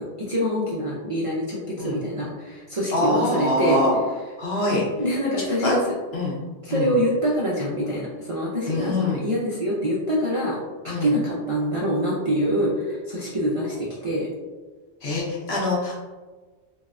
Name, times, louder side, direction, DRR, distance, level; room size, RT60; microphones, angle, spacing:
voice 1, 0.0-3.8 5.0-5.8 6.6-10.6 10.8-14.3, equal, 45° right, -7 dB, 0.5 m, -25 dB
voice 2, 2.9-4.0 4.4-4.8 5.6-5.7 6.1-6.4 6.7-6.9 8.7-9.2 10.9-11.2 15.0-15.9, left 1 dB, 70° left, -4 dB, 1.1 m, -24 dB
3.2 x 2.7 x 2.4 m, 1.3 s
omnidirectional pair, 1.1 m